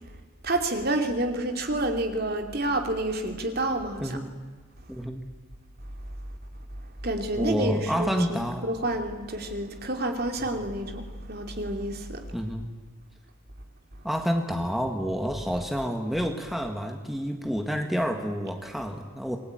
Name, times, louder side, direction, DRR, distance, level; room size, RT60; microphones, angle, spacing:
voice 1, 0.4-4.2 7.0-12.2, right 1 dB, 45° right, 4 dB, 2.8 m, -29 dB
voice 2, 4.0-4.3 4.9-5.2 7.4-8.7 12.3-12.7 14.0-19.4, equal, ahead, 3 dB, 1.7 m, -29 dB
27.0 x 21.0 x 9.0 m, 1.4 s
head